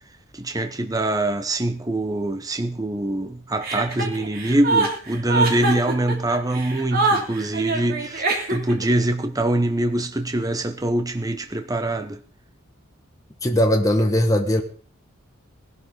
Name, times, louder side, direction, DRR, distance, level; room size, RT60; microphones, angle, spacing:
voice 1, 0.3-8.2 8.5-12.2, right 1 dB, 15° right, 0.8 m, -24 dB
Chuckle chortle, 3.6-8.8, right 3 dB, 45° right, 2.8 m, -24 dB
voice 2, 13.4-14.6, equal, 15° left, 1.6 m, -19 dB
19.0 x 11.5 x 3.9 m
head